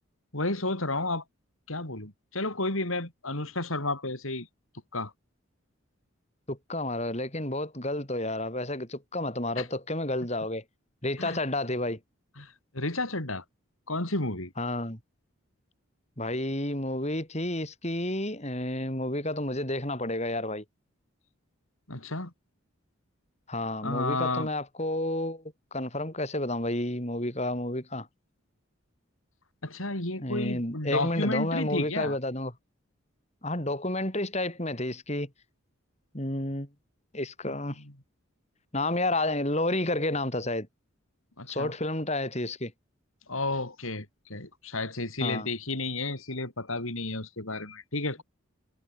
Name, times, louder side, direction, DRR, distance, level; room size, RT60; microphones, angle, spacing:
voice 1, 0.3-1.2 1.7-4.5 4.9-5.1 9.6-9.7 11.2-11.4 12.4-13.4 13.9-14.5 21.9-22.3 23.8-24.5 29.6-32.2 37.4-37.8 41.4-41.7 43.3-48.2, left 2 dB, 75° left, 6.0 m, -32 dB
voice 2, 6.5-10.6 11.0-12.0 14.6-15.0 16.2-20.6 23.5-25.4 25.7-28.1 30.2-32.5 33.4-35.3 36.1-36.7 37.1-37.8 38.7-40.7 41.5-42.7 45.2-45.5, left 1 dB, 30° left, 6.3 m, -30 dB
head